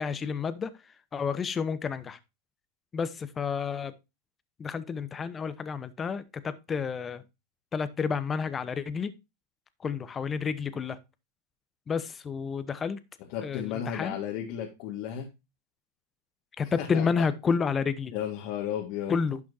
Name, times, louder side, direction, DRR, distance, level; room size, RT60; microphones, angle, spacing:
voice 1, 0.0-2.2 2.9-3.9 4.6-7.2 7.7-9.1 9.8-11.0 11.9-13.0 13.4-14.2 16.6-18.1 19.1-19.4, left 6 dB, 20° left, 14 dB, 0.9 m, -30 dB
voice 2, 13.3-15.3 16.6-17.1 18.1-19.2, left 9 dB, 55° left, 0 dB, 1.8 m, -34 dB
11.0 x 6.1 x 2.7 m, 0.25 s
hypercardioid pair, 115°, 0 cm